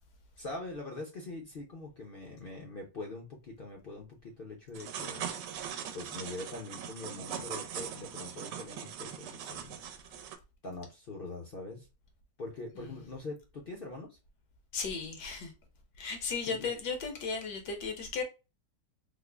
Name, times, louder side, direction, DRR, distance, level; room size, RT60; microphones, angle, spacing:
voice 1, 0.4-5.3 5.9-9.8 10.6-11.9 12.4-14.2 16.5-16.7, left 2 dB, 55° left, 0.6 m, -43 dB
sound 1, 4.7-10.4, right 8 dB, 85° right, 1.2 m, -41 dB
voice 2, 12.7-13.1 14.7-15.5 16.0-18.2, left 5 dB, 80° left, 1.5 m, -36 dB
3.6 x 2.0 x 3.3 m
omnidirectional pair, 1.8 m